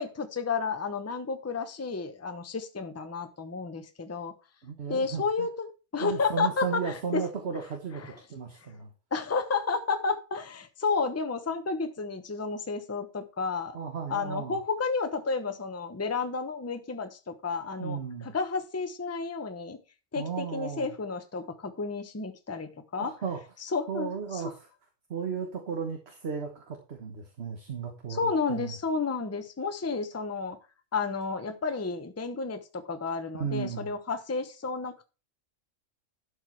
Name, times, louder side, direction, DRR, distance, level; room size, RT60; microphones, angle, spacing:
voice 1, 0.0-4.3 4.9-5.7 5.9-7.2 8.0-8.1 9.1-13.8 14.1-19.8 20.1-23.1 23.6-24.5 28.1-30.6 30.9-35.0, left 4 dB, 15° left, 8 dB, 0.7 m, -31 dB
voice 2, 4.6-5.5 6.0-8.0 8.3-8.9 13.7-14.6 17.8-18.3 20.1-20.9 22.9-23.4 23.9-24.7 25.1-28.7 33.3-33.9, right 6 dB, 55° right, 4 dB, 1.5 m, -35 dB
11.5 x 4.9 x 4.6 m, 0.32 s
omnidirectional pair, 1.3 m